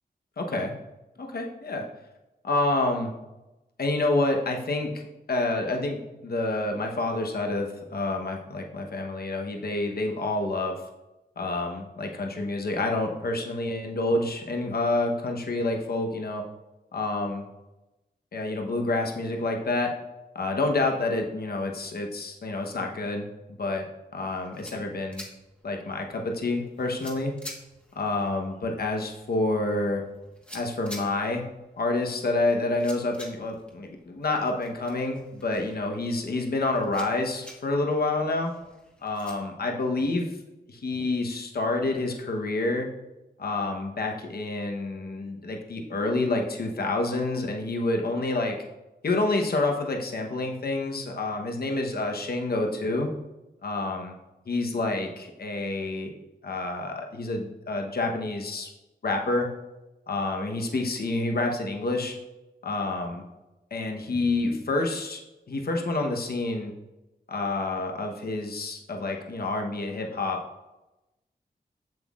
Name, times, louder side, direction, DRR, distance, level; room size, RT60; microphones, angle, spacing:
voice 1, 0.4-0.7 1.2-1.9 2.4-3.1 3.8-5.0 5.3-10.8 11.4-16.4 16.9-17.5 18.3-19.9 20.3-23.9 24.1-25.2 25.6-27.3 28.0-30.0 30.5-31.4 31.8-38.5 39.0-40.3 40.7-42.9 43.4-48.6 49.0-53.1 53.6-54.2 54.5-56.1 56.4-58.7 59.0-59.5 60.1-62.1 62.6-63.2 63.7-65.2 65.5-66.7 67.3-70.4, left 2 dB, 65° left, 2 dB, 1.0 m, -28 dB
sound 1, 24.2-39.3, equal, 5° left, 1.3 m, -49 dB
7.6 x 7.4 x 2.4 m, 0.99 s
wide cardioid pair, 110°, 17 cm